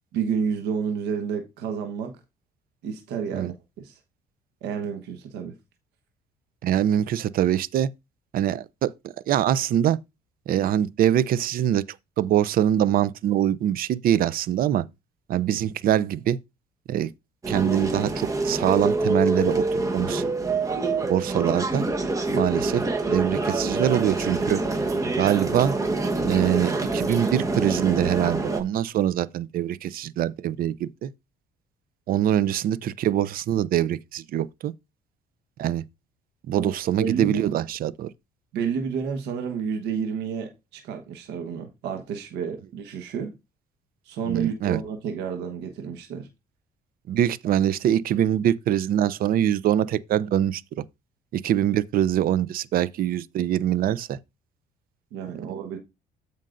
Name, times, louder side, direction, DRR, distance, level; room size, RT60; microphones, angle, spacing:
voice 1, 0.1-2.2 2.8-4.0 4.6-5.5 36.6-36.7 37.0-37.5 38.5-43.3 44.0-46.3 55.1-55.8, right 6 dB, 90° right, 1.3 m, -30 dB
voice 2, 6.6-7.9 8.3-10.0 10.5-11.8 12.2-14.9 15.3-16.4 16.9-17.1 17.5-19.6 19.9-20.2 21.1-21.9 22.3-24.6 25.2-25.8 26.2-31.1 32.1-34.7 35.6-35.8 36.5-38.1 44.3-44.8 47.1-50.6 51.3-54.2, right 11 dB, 60° right, 0.5 m, -23 dB
sound 1, 17.4-28.6, right 2 dB, 20° right, 1.2 m, -26 dB
13.0 x 5.3 x 2.6 m
cardioid pair, 110°, 17 cm